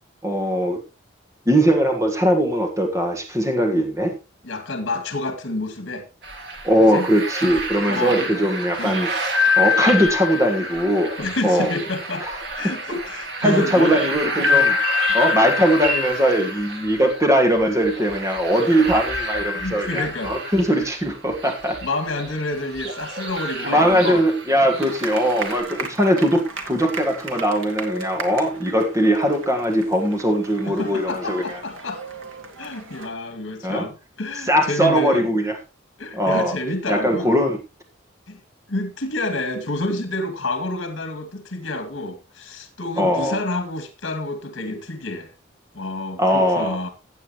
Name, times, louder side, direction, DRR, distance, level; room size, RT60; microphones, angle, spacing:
voice 1, 0.2-0.8 1.5-4.1 6.6-9.1 9.6-11.1 11.4-11.7 12.2-12.3 13.4-14.7 15.1-21.8 23.6-31.4 33.6-33.8 34.5-35.6 36.1-36.5 36.9-37.6 43.0-43.4 46.2-46.9, equal, 15° right, 1.5 m, -20 dB
voice 2, 4.4-6.1 6.8-7.1 7.8-8.3 8.8-9.0 11.2-12.3 12.6-14.0 19.5-20.4 20.8-20.9 21.8-24.2 30.8-32.0 32.6-35.3 36.0-37.3 38.3-38.4 38.7-45.3 45.7-46.9, left 2 dB, 70° left, 2.2 m, -28 dB
sound 1, 6.2-25.6, left 2 dB, 55° right, 2.1 m, -27 dB
sound 2, 24.7-33.1, right 4 dB, 85° right, 2.0 m, -36 dB
15.5 x 8.0 x 3.0 m
head